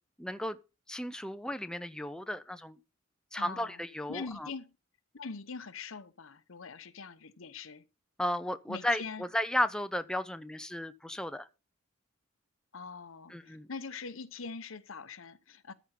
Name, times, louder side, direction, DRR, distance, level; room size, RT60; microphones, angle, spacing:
voice 1, 0.2-0.6 0.9-2.8 3.3-4.5 8.2-11.5 13.3-13.7, left 1 dB, 5° left, 0.5 m, -34 dB
voice 2, 3.4-3.8 4.1-4.8 5.1-7.8 8.7-9.2 12.7-15.7, left 4 dB, 85° left, 0.9 m, -43 dB
13.5 x 5.3 x 5.8 m
head